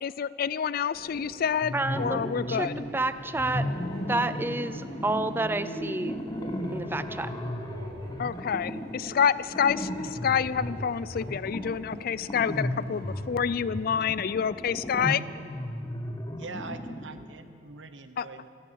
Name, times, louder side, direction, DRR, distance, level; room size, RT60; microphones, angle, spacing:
voice 1, 0.0-2.7 8.2-15.2 18.2-18.3, left 7 dB, 55° left, 18 dB, 0.4 m, -28 dB
Subway metro underground, 0.9-14.1, equal, 60° right, 1.5 m, -49 dB
sound 1, 1.6-3.0 3.3-17.2, left 1 dB, 20° left, 0.9 m, -35 dB
voice 2, 1.7-3.7 4.1-6.2 6.7-7.3, right 2 dB, 10° right, 13 dB, 0.4 m, -30 dB
Acoustic guitar, 3.5-6.8, equal, 70° left, 1.4 m, -48 dB
voice 3, 16.4-18.5, right 3 dB, 85° right, 10 dB, 0.9 m, -43 dB
14.5 x 14.0 x 7.0 m, 2.4 s
head